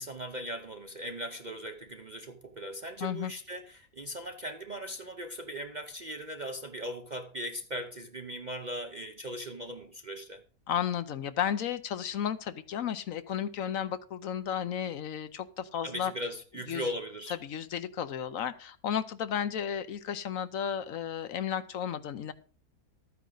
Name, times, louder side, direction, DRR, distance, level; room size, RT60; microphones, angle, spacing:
voice 1, 0.0-10.4 15.8-17.3, equal, 40° right, 0.6 m, -39 dB
voice 2, 3.0-3.3 10.7-16.1 16.7-16.9 17.4-22.3, left 9 dB, 65° left, 1.0 m, -33 dB
13.0 x 9.3 x 3.8 m
omnidirectional pair, 1.6 m